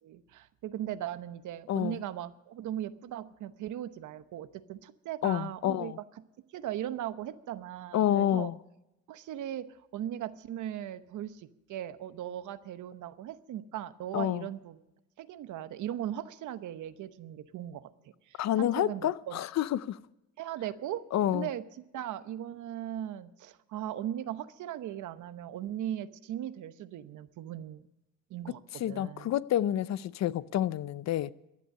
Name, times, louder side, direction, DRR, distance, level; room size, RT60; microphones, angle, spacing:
voice 1, 0.0-6.0 6.5-8.5 9.1-14.8 15.2-17.9 18.3-19.4 20.4-21.0 21.3-27.9 28.3-29.3, right 11 dB, 80° right, 0.9 m, -38 dB
voice 2, 1.7-2.0 5.2-6.0 7.9-8.6 14.1-14.5 18.4-20.0 21.1-21.5 28.8-31.3, left 11 dB, 60° left, 0.6 m, -29 dB
15.5 x 11.0 x 6.7 m
cardioid pair, 90°, 30 cm